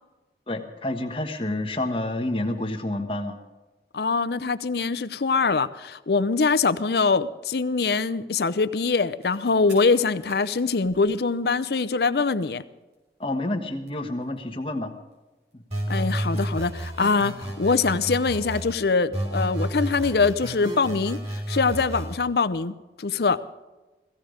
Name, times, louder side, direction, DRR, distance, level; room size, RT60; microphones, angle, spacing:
voice 1, 0.5-3.4 13.2-14.9 15.5-15.6, left 1 dB, 30° left, 4 dB, 1.3 m, -29 dB
voice 2, 3.9-12.6 15.9-23.4, left 4 dB, 65° left, 14 dB, 0.6 m, -23 dB
sound 1, 9.2-9.4 9.7-11.8 12.2-12.3 12.4-12.5 12.8-13.3 13.6-14.8 15.1-16.6, right 1 dB, 90° right, 6.1 m, -51 dB
sound 2, 15.7-18.7 19.1-22.1, right 1 dB, 35° right, 3.1 m, -31 dB
17.0 x 15.5 x 5.1 m, 1.2 s
head